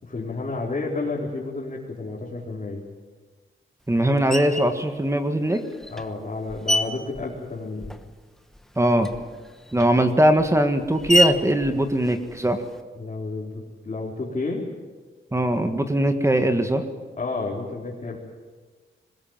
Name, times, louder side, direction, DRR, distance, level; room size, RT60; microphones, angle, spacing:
voice 1, 0.0-2.8 5.9-8.0 12.9-14.7 17.1-18.2, left 3 dB, 35° left, -4 dB, 4.0 m, -31 dB
voice 2, 3.9-5.6 8.8-9.1 9.7-12.6 15.3-16.8, right 1 dB, 15° right, 7 dB, 1.6 m, -21 dB
Screech, 4.3-4.8 5.5-8.2 8.5-12.8, left 1 dB, ahead, 1.1 m, -29 dB
22.0 x 20.0 x 8.9 m, 1.4 s
wide cardioid pair, 145°, 20 cm